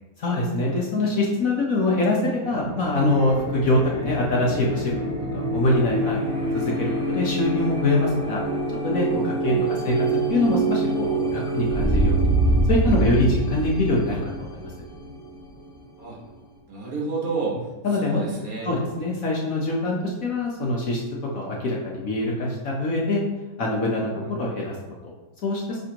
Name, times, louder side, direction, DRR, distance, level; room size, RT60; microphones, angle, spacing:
voice 1, 0.2-4.9 5.3-6.3 6.5-8.4 8.8-9.5 9.8-12.3 12.7-14.7 17.8-18.2 18.6-21.0 21.3-23.2 23.6-24.7 25.4-25.8, left 2 dB, 60° left, -2 dB, 1.3 m, -24 dB
sound 1, 2.5-15.9, right 2 dB, 25° right, 0.9 m, -25 dB
voice 2, 9.5-9.9 16.0-16.2 16.7-17.6 17.9-18.7 24.0-24.4, right 3 dB, 55° right, -4 dB, 1.9 m, -31 dB
10.5 x 3.5 x 2.9 m, 1.1 s
omnidirectional pair, 1.8 m